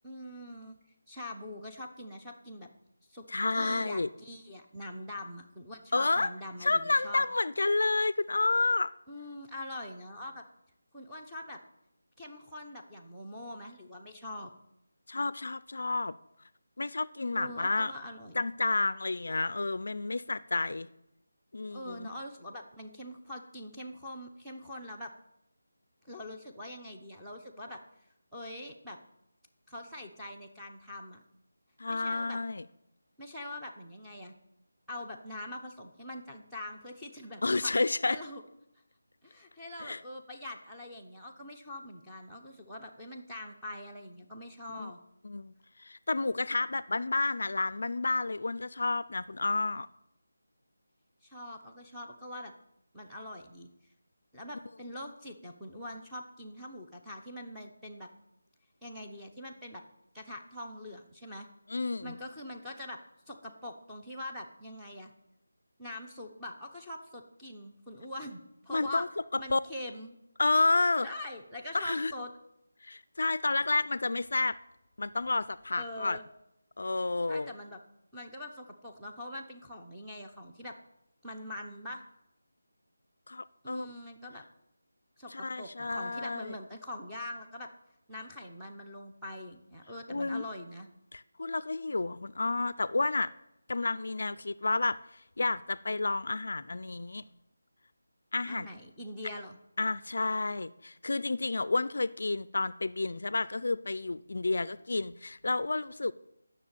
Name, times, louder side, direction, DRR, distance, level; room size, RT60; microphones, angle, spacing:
voice 1, 0.0-0.8 1.1-2.7 3.1-3.2 3.5-7.3 9.1-10.4 10.9-11.6 12.2-14.5 17.3-18.4 21.7-25.1 26.0-27.8 28.3-29.0 29.7-31.2 31.9-32.4 33.2-34.3 34.9-37.7 38.0-38.4 39.2-45.0 51.2-52.5 52.9-53.7 54.3-58.1 58.8-59.8 60.1-61.5 62.0-63.0 63.3-65.1 65.8-69.0 69.4-70.2 71.0-72.3 75.7-76.2 77.3-77.8 78.1-80.7 81.2-82.0 83.6-84.4 85.2-87.7 88.1-90.9 98.5-99.6, left 1 dB, ahead, 0.9 m, -43 dB
voice 2, 3.3-4.1 5.9-6.3 6.6-8.9 15.1-16.2 16.8-17.9 18.4-20.9 21.5-22.1 31.8-32.6 37.4-38.2 39.8-40.0 44.8-44.9 45.2-45.5 45.8-49.9 61.7-62.2 68.7-69.1 69.5-69.6 70.4-71.1 71.7-72.1 72.8-74.6 75.0-76.2 76.8-77.5 83.3-83.9 85.3-86.6 90.1-90.4 91.1-93.3 93.7-97.2 98.3-98.7 99.8-106.1, left 3 dB, 60° left, 0.4 m, -30 dB
9.9 x 6.6 x 9.0 m
figure-of-eight pair, 175°, 0 cm